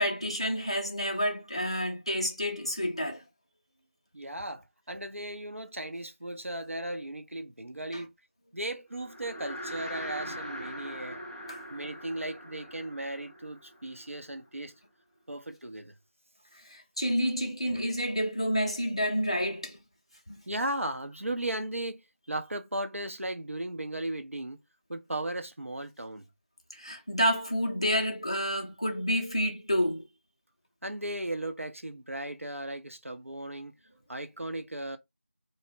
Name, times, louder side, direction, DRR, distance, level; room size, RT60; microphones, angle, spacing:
voice 1, 0.0-3.2 7.9-8.0 10.2-10.4 11.5-11.7 16.6-19.8 20.3-20.4 26.7-30.1, equal, 25° left, 0.4 m, -29 dB
voice 2, 4.1-8.1 8.5-11.2 11.7-14.7 15.3-15.9 20.5-22.0 22.3-24.6 24.9-26.3 30.8-33.7 34.1-35.0, right 1 dB, 85° right, 0.6 m, -36 dB
sound 1, 9.0-14.4, equal, 35° right, 0.6 m, -41 dB
2.7 x 2.0 x 3.5 m
figure-of-eight pair, 170°, 7 cm